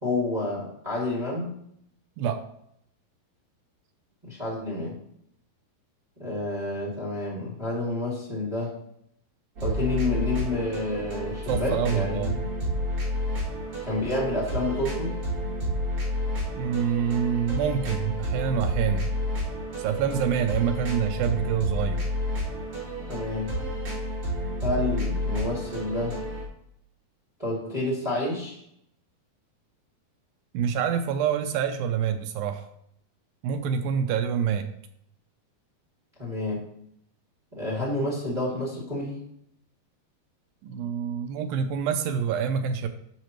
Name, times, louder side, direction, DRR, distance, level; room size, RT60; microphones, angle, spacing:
voice 1, 0.0-1.6 4.2-4.9 6.2-8.7 9.6-12.3 13.8-15.2 23.1-23.5 24.6-26.2 27.4-28.6 36.2-36.6 37.5-39.2, left 2 dB, 60° right, -5 dB, 0.4 m, -29 dB
sound 1, 9.6-26.5, equal, 40° right, 2.9 m, -30 dB
voice 2, 11.4-12.3 16.6-19.1 19.8-22.0 30.5-32.7 33.4-34.7 40.6-42.9, right 8 dB, 80° right, 7 dB, 2.1 m, -26 dB
10.5 x 5.8 x 3.0 m, 0.73 s
omnidirectional pair, 4.6 m